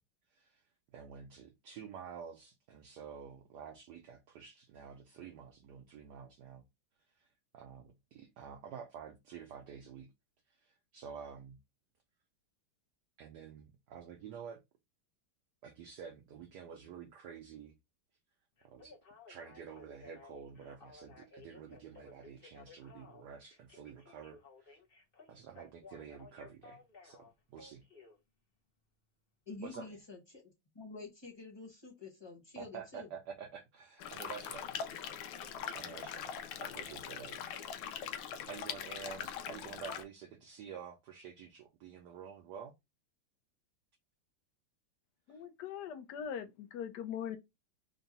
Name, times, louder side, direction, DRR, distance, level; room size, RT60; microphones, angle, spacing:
voice 1, 0.9-6.6 7.2-7.3 7.5-10.1 10.5-11.6 13.2-14.6 15.6-17.7 18.6-18.9 19.3-24.8 25.3-27.8 29.6-30.0 32.6-34.7 35.0-35.1 35.7-36.3 36.6-37.4 38.1-42.7 45.3-45.4, right 7 dB, 70° right, 1.0 m, -49 dB
Telephone, 18.6-28.2 29.7-29.9, left 4 dB, 50° left, 0.6 m, -57 dB
voice 2, 29.5-33.1, left 3 dB, 20° left, 0.8 m, -48 dB
sound 1, 34.0-40.0, left 8 dB, 90° left, 1.5 m, -42 dB
voice 3, 45.3-47.4, left 8 dB, 70° left, 1.0 m, -41 dB
3.8 x 2.3 x 3.9 m
omnidirectional pair, 2.3 m